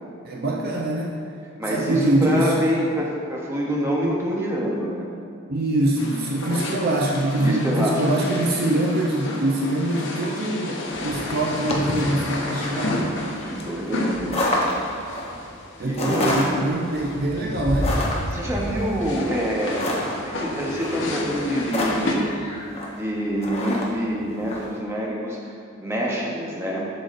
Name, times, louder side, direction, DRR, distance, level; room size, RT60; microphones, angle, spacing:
voice 1, 0.2-1.2 1.7-2.6 5.5-13.1 15.8-18.0, right 1 dB, 45° right, -1 dB, 0.5 m, -24 dB
voice 2, 1.6-5.1 7.4-8.3 13.5-14.4 15.8-16.4 18.3-19.9 20.2-22.3 22.9-25.5 25.8-26.9, equal, 10° right, -3 dB, 0.8 m, -26 dB
sound 1, 6.0-22.2, left 1 dB, 55° left, 0.8 m, -32 dB
sound 2, 10.9-24.7, left 1 dB, 30° left, 0.7 m, -29 dB
7.6 x 6.8 x 2.5 m, 2.5 s
head